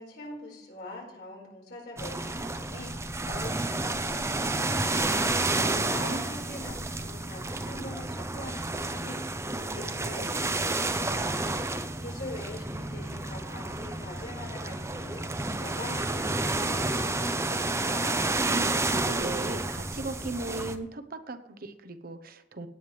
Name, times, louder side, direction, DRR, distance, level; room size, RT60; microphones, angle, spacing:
voice 1, 0.0-5.3 5.8-9.2 9.6-11.3 12.0-18.2, left 1 dB, 60° left, -2 dB, 4.7 m, -43 dB
sound 1, 2.0-20.8, right 2 dB, 15° right, 0.7 m, -30 dB
voice 2, 5.5-6.2 18.4-22.7, right 2 dB, 55° right, 9 dB, 0.9 m, -37 dB
17.0 x 9.3 x 3.3 m, 0.82 s
head